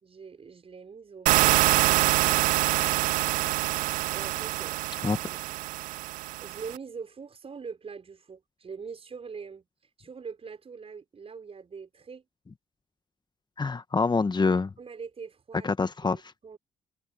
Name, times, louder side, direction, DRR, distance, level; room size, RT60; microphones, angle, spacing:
voice 1, 0.0-2.4 4.1-4.8 5.1-5.5 6.4-9.7 10.0-12.2 14.8-15.7 16.0-16.6, right 5 dB, 45° right, 6.0 m, -43 dB
sound 1, 1.3-6.8, right 18 dB, 75° right, 0.7 m, -25 dB
voice 2, 13.6-14.7 15.6-16.3, left 4 dB, 30° left, 1.7 m, -26 dB
hypercardioid pair, 45°, 14 cm